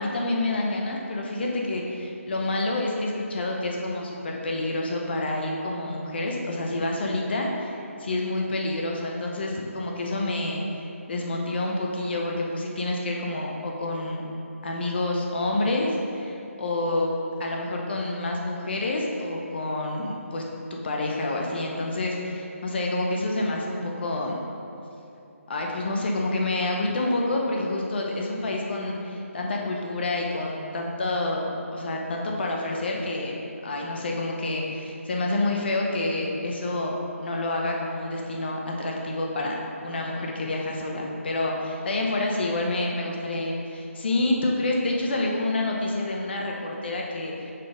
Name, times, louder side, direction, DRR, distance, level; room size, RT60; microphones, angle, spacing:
voice 1, 0.0-10.6 11.1-14.2 14.6-17.1 17.4-20.4 20.7-24.4 25.5-33.3 33.6-47.5, left 2 dB, 45° left, -1 dB, 0.8 m, -28 dB
5.6 x 4.2 x 5.0 m, 2.8 s
hypercardioid pair, 165°, 8 cm